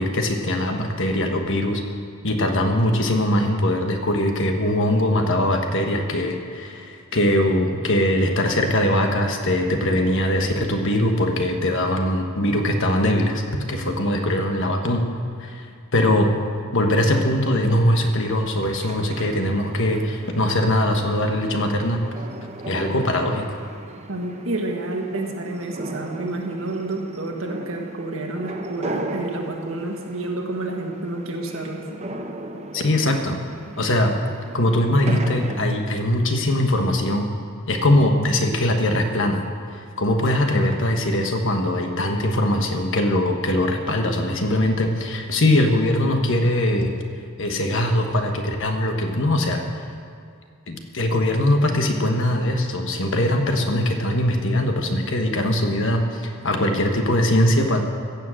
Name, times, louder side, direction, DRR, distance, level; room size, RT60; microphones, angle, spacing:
voice 1, 0.0-1.8 2.2-13.4 13.7-15.0 15.4-15.7 15.9-16.3 16.7-22.0 22.7-23.6 32.7-33.4 33.8-34.1 34.5-37.3 37.7-39.4 40.0-46.9 47.4-49.6 50.7-57.8, left 1 dB, 60° left, 4 dB, 1.3 m, -21 dB
sound 1, 17.6-35.7, right 1 dB, 30° right, 0.8 m, -37 dB
voice 2, 24.1-31.8, right 2 dB, 65° right, 2 dB, 1.6 m, -29 dB
15.0 x 7.5 x 7.7 m, 2.3 s
head